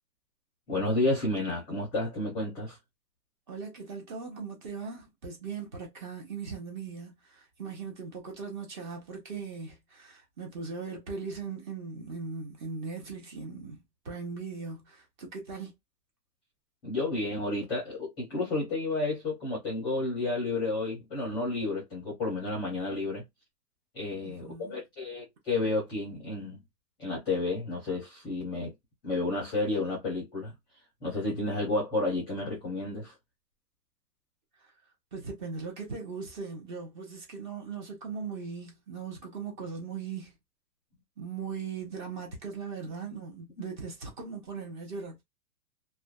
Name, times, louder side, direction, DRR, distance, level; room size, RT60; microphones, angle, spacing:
voice 1, 0.7-2.8 16.8-23.2 23.9-26.6 27.0-28.7 29.0-30.5 31.0-33.1, left 2 dB, 10° left, 0.6 m, -31 dB
voice 2, 3.5-15.7 24.2-24.8 35.1-40.3 41.2-45.2, right 5 dB, 30° right, 0.7 m, -39 dB
2.5 x 2.2 x 2.3 m
hypercardioid pair, 155°, 49 cm